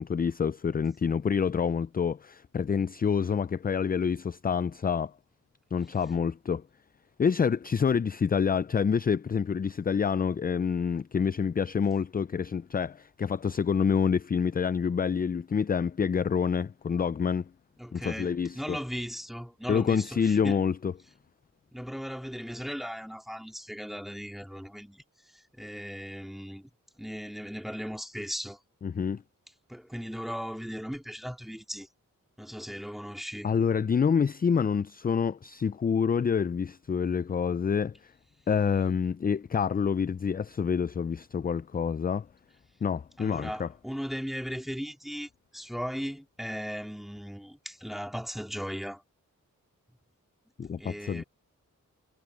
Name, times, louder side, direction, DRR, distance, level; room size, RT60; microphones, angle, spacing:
voice 1, 0.0-5.1 5.7-6.6 7.2-17.5 17.9-18.8 19.7-20.9 28.8-29.2 33.4-38.1 38.5-42.3 42.8-43.7 50.6-51.2, left 6 dB, 25° left, 0.4 m, -27 dB
voice 2, 17.8-20.6 21.7-26.7 27.0-28.6 29.7-31.9 32.4-33.5 43.2-49.0 50.8-51.2, equal, ahead, 2.7 m, -37 dB
cardioid pair, 45°, 34 cm